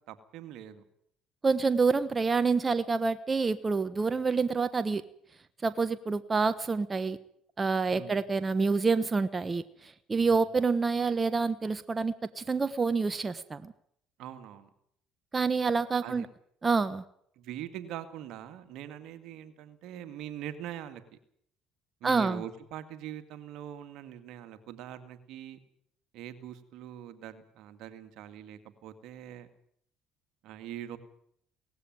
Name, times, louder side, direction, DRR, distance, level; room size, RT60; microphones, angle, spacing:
voice 1, 0.1-0.8 7.9-8.2 10.2-10.5 14.2-14.7 16.0-16.3 17.4-21.2 22.0-25.6 26.1-29.5 30.4-31.0, right 11 dB, 70° right, 9 dB, 2.1 m, -43 dB
voice 2, 1.4-5.0 5.6-7.2 7.6-13.7 15.3-16.3 16.6-17.0 22.0-22.4, right 4 dB, 30° right, 12 dB, 1.2 m, -27 dB
18.5 x 15.0 x 9.4 m, 0.67 s
supercardioid pair, 75°, 0 cm